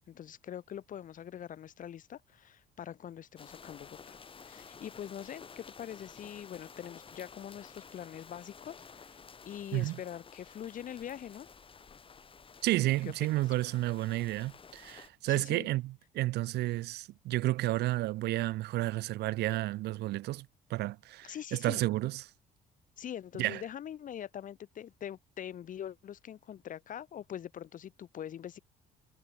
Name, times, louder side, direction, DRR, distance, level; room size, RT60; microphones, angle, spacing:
voice 1, 0.1-4.2 4.4-9.2 9.5-11.5 13.3-13.4 15.3-15.7 21.2-21.8 23.0-28.6, left 10 dB, 50° left, 2.0 m, -43 dB
sound 1, 3.4-15.1, left 6 dB, 30° left, 3.4 m, -53 dB
voice 2, 12.6-22.3 23.4-23.6, right 17 dB, 75° right, 1.0 m, -31 dB
cardioid pair, 110°, 17 cm